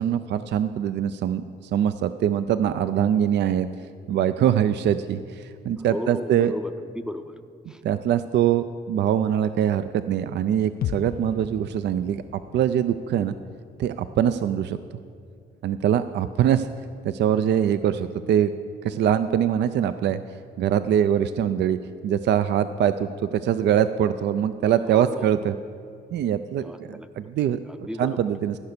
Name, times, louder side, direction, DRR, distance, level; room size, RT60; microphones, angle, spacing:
voice 1, 0.0-3.7 4.1-6.5 7.8-12.2 12.5-13.4 13.8-14.8 15.6-16.7 17.0-18.5 18.8-21.8 22.0-25.5 26.1-27.6 28.0-28.6, right 9 dB, 60° right, 12 dB, 0.4 m, -23 dB
voice 2, 5.8-7.4 7.7-7.8 24.8-25.3 26.6-27.3 27.7-28.2, left 1 dB, 5° right, 9 dB, 0.6 m, -35 dB
sound 1, 10.8-14.7 15.1-15.2, left 9 dB, 50° left, 0.4 m, -37 dB
14.5 x 5.7 x 6.7 m, 2.4 s
cardioid pair, 90°, 20 cm